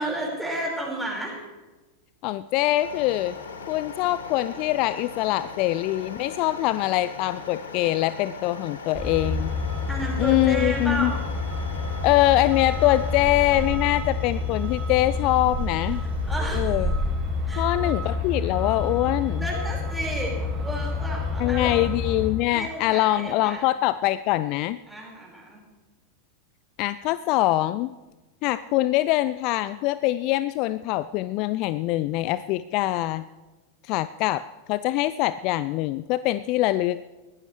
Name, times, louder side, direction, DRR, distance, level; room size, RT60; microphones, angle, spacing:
voice 1, 0.0-1.4 9.9-11.2 16.0-16.8 17.4-18.0 19.4-20.3 20.6-21.9 22.5-23.7 24.9-25.6, right 1 dB, ahead, -3 dB, 5.2 m, -32 dB
voice 2, 2.2-3.4 3.7-9.5 10.2-11.1 12.0-16.0 16.5-16.9 17.6-19.5 21.4-24.8 26.8-27.9 28.4-33.3 33.8-37.0, left 16 dB, 40° left, 16 dB, 0.3 m, -23 dB
sound 1, 2.8-16.5, left 4 dB, 65° left, 1.6 m, -40 dB
Truck, 8.9-22.3, left 3 dB, 25° right, 5.7 m, -28 dB
20.5 x 15.5 x 3.3 m, 1.2 s
figure-of-eight pair, 90°, 0 cm